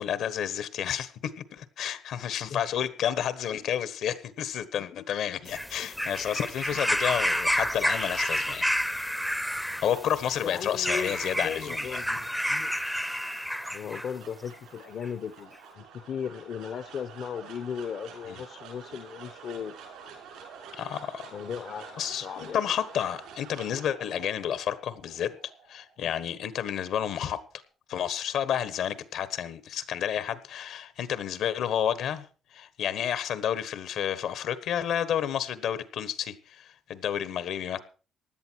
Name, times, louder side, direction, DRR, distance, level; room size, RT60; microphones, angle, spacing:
voice 1, 0.0-9.1 9.8-12.0 18.3-18.4 20.7-21.3 22.0-25.4 25.7-27.4 27.9-32.3 32.5-37.8, left 9 dB, 70° left, 1.3 m, -30 dB
sound 1, 5.5-14.1 15.0-15.1, equal, ahead, 0.6 m, -30 dB
sound 2, 9.4-27.6, right 6 dB, 85° right, 6.2 m, -49 dB
voice 2, 10.4-12.7 13.7-19.7 21.3-22.6, left 7 dB, 55° left, 0.8 m, -37 dB
16.0 x 11.0 x 4.6 m
cardioid pair, 130°, 0 cm